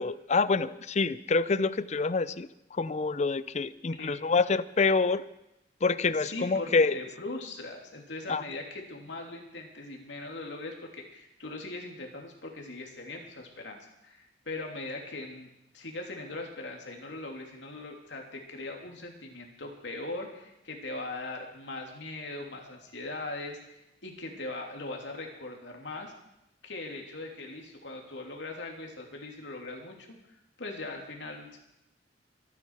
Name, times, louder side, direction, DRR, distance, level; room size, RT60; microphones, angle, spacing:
voice 1, 0.0-5.2 5.8-7.0 8.3-8.4, left 4 dB, 40° left, 16 dB, 0.5 m, -27 dB
voice 2, 6.2-26.1 26.6-30.2 30.6-31.6, left 2 dB, 75° left, 1 dB, 2.9 m, -40 dB
23.5 x 9.9 x 4.8 m, 0.86 s
head